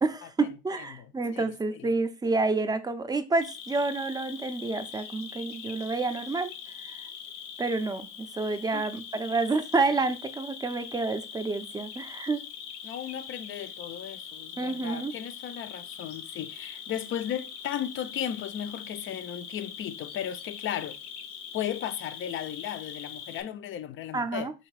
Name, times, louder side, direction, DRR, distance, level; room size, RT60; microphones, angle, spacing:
voice 1, 0.0-6.5 6.8-7.0 7.6-12.4 14.6-15.2 24.1-24.5, right 3 dB, 10° right, 0.5 m, -29 dB
voice 2, 0.9-1.9 8.7-8.9 12.8-21.0 21.5-24.5, left 10 dB, 35° left, 0.5 m, -35 dB
Cricket, 3.4-23.4, left 8 dB, 85° left, 0.9 m, -42 dB
3.9 x 2.8 x 4.7 m
supercardioid pair, 95°, 35 cm